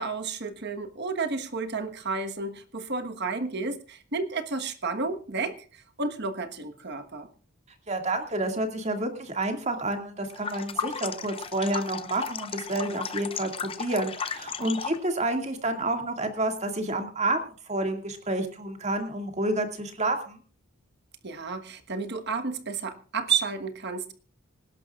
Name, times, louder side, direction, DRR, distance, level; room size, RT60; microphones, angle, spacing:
voice 1, 0.0-7.3 21.2-24.1, right 4 dB, 50° right, 8 dB, 1.3 m, -31 dB
voice 2, 7.9-20.4, right 2 dB, 30° right, 4 dB, 2.2 m, -29 dB
sound 1, 10.3-15.1, left 6 dB, 25° left, 0.6 m, -35 dB
26.0 x 11.5 x 2.4 m, 0.40 s
head